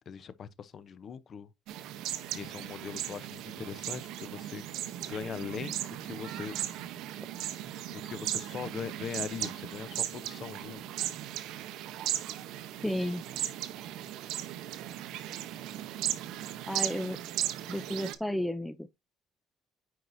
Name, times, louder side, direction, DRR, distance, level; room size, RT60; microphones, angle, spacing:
voice 1, 0.1-1.5 2.3-4.6 5.0-6.5 7.9-11.0, left 7 dB, 35° left, 0.7 m, -40 dB
sound 1, 1.7-18.2, right 12 dB, 70° right, 0.8 m, -37 dB
voice 2, 12.8-13.2 16.7-17.2 17.7-18.9, equal, ahead, 0.4 m, -32 dB
9.4 x 4.6 x 2.6 m
cardioid pair, 145°, 0 cm